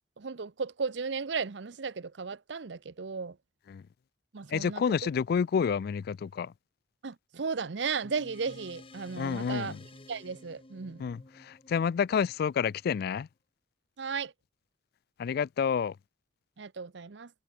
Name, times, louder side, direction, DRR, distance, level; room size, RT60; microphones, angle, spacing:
voice 1, 0.2-3.4 4.3-4.8 7.0-9.7 10.1-11.0 14.0-14.3 16.6-17.3, right 5 dB, 70° right, 0.7 m, -35 dB
voice 2, 4.5-6.5 9.2-9.8 11.0-13.3 15.2-16.0, left 6 dB, 55° left, 0.3 m, -29 dB
sound 1, 8.0-12.8, left 2 dB, 30° left, 1.7 m, -52 dB
head